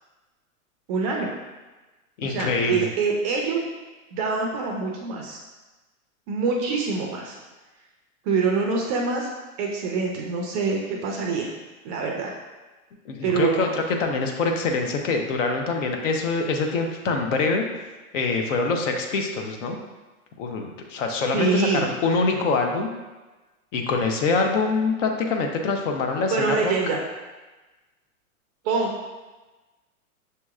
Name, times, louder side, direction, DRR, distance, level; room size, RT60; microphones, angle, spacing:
voice 1, 0.9-1.3 2.2-3.6 4.1-5.4 6.3-7.4 8.2-9.3 9.6-11.5 11.8-12.3 13.2-13.8 21.3-21.9 22.3-22.5 26.3-27.0 28.6-28.9, right 4 dB, 30° right, 0 dB, 0.4 m, -25 dB
voice 2, 2.2-2.9 13.1-17.6 18.1-19.8 20.4-22.9 23.7-26.7, left 3 dB, 60° left, 3 dB, 0.8 m, -25 dB
6.5 x 2.9 x 2.4 m, 1.2 s
hypercardioid pair, 125°, 43 cm